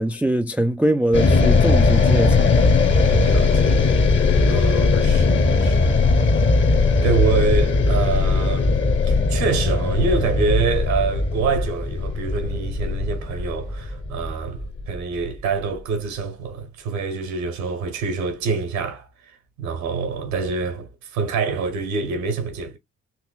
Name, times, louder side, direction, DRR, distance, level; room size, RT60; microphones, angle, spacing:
voice 1, 0.0-2.6, right 1 dB, 5° right, 0.4 m, -22 dB
sound 1, 1.1-15.4, left 3 dB, 30° left, 1.0 m, -19 dB
voice 2, 3.1-3.9 4.5-6.0 7.0-19.1 19.6-22.8, right 5 dB, 70° right, 1.3 m, -26 dB
4.5 x 3.0 x 2.3 m
figure-of-eight pair, 40°, 37 cm